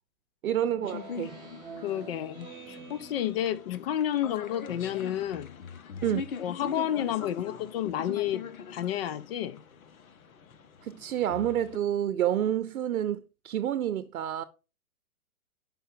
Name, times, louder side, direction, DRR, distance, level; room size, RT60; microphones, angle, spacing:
voice 1, 0.4-1.4 6.0-6.2 10.8-14.4, right 11 dB, 70° right, 0.7 m, -29 dB
Speech synthesizer, 0.7-4.2, right 5 dB, 10° right, 2.1 m, -47 dB
sound 1, 0.8-11.8, left 6 dB, 70° left, 1.1 m, -42 dB
voice 2, 1.8-5.5 6.4-8.4 8.7-9.6, left 11 dB, 45° left, 0.8 m, -31 dB
5.5 x 5.5 x 5.6 m
hypercardioid pair, 140°, 43 cm